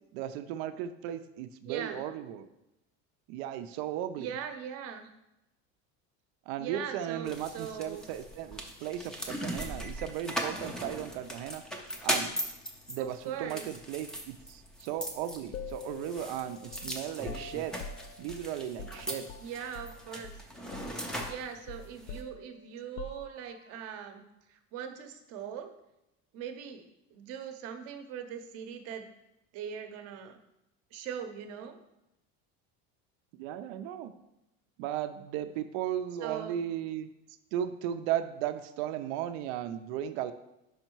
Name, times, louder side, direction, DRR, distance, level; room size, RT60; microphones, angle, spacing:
voice 1, 0.1-2.5 3.3-4.3 6.5-11.6 12.0-12.4 12.9-17.8 18.2-19.3 33.3-34.1 34.8-37.1 37.5-40.3, right 11 dB, 80° right, 10 dB, 0.6 m, -36 dB
voice 2, 1.6-2.0 4.2-5.1 6.6-8.0 13.0-13.7 19.4-20.4 21.2-24.2 24.5-25.7 26.3-26.9 27.1-29.1 29.5-30.4 30.9-31.8 36.2-36.6, right 8 dB, 50° right, 7 dB, 0.8 m, -40 dB
sound 1, 7.3-22.2, equal, ahead, 0.4 m, -39 dB
sound 2, 15.5-20.0 20.2-20.4 20.7-23.7, left 5 dB, 80° left, 0.5 m, -45 dB
5.5 x 4.9 x 4.5 m, 0.90 s
cardioid pair, 170°, 31 cm